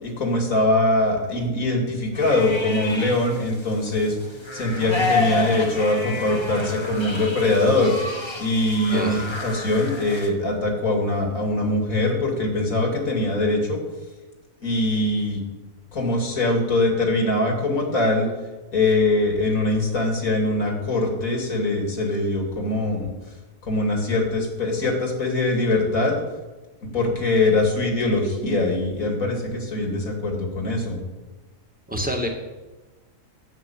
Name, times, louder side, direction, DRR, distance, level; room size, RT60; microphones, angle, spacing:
voice 1, 0.0-4.2 4.5-8.0 8.4-13.8 14.6-15.4 15.9-18.3 18.7-23.1 23.6-26.1 26.9-31.0, left 2 dB, 80° left, 1 dB, 3.0 m, -22 dB
sound 1, 2.1-10.3, left 2 dB, 20° left, 1.2 m, -30 dB
voice 2, 8.9-9.3 31.9-32.3, equal, 5° right, 2 dB, 1.6 m, -27 dB
10.5 x 8.2 x 7.2 m, 1.2 s
omnidirectional pair, 1.4 m